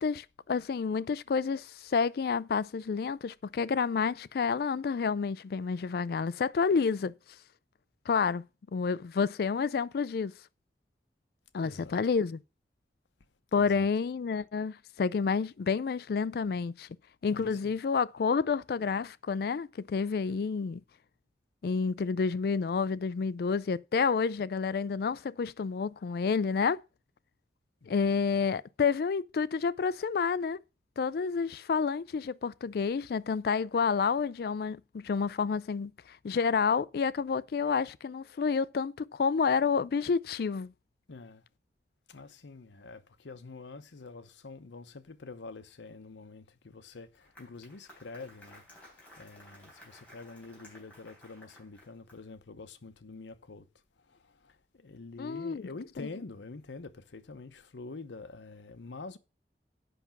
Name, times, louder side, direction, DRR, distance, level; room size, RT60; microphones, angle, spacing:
voice 1, 0.0-7.1 8.1-8.4 8.7-10.3 11.5-12.4 13.5-16.9 17.2-20.8 21.6-26.8 27.9-30.6 31.0-40.7 55.2-55.7 56.0-56.1, left 5 dB, 55° left, 0.3 m, -29 dB
voice 2, 11.6-12.0 13.5-13.9 17.3-17.8 27.8-28.5 41.1-41.4 42.1-53.7 54.1-59.2, left 3 dB, 90° left, 0.8 m, -47 dB
Applause, 46.9-52.4, equal, 10° left, 3.8 m, -56 dB
7.9 x 5.9 x 5.8 m
head